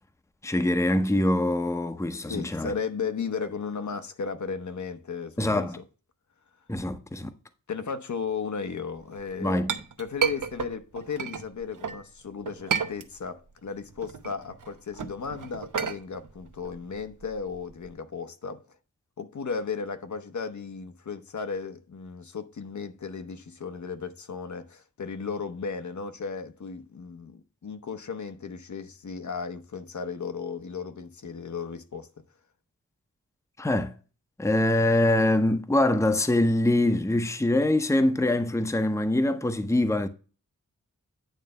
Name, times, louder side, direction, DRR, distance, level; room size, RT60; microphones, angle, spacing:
voice 1, 0.4-2.7 5.4-5.8 6.7-7.3 9.4-9.7 33.6-33.9 34.4-40.1, left 1 dB, 10° left, 0.7 m, -24 dB
voice 2, 2.3-5.7 7.7-9.6 10.0-18.6 19.2-32.1, left 5 dB, 60° left, 0.9 m, -35 dB
Chink clink, 9.2-12.0 12.5-13.5 13.8-17.9, right 6 dB, 70° right, 0.9 m, -32 dB
9.2 x 3.3 x 6.6 m
wide cardioid pair, 95°, 33 cm